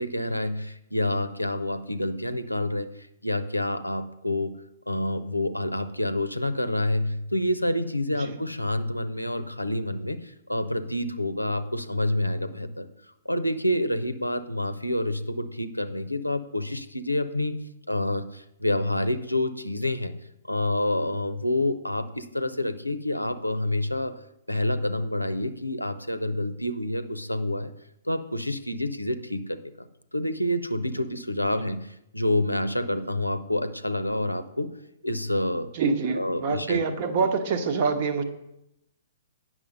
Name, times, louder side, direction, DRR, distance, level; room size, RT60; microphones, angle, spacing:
voice 1, 0.0-4.5 4.9-12.9 13.2-17.5 17.9-20.2 20.5-24.1 24.5-27.7 28.1-34.7 35.0-35.7 36.1-36.8, left 1 dB, 90° left, 12 dB, 0.6 m, -28 dB
voice 2, 35.7-38.2, right 5 dB, 40° right, 8 dB, 1.0 m, -25 dB
9.1 x 6.2 x 5.3 m, 0.84 s
figure-of-eight pair, 115°, 0 cm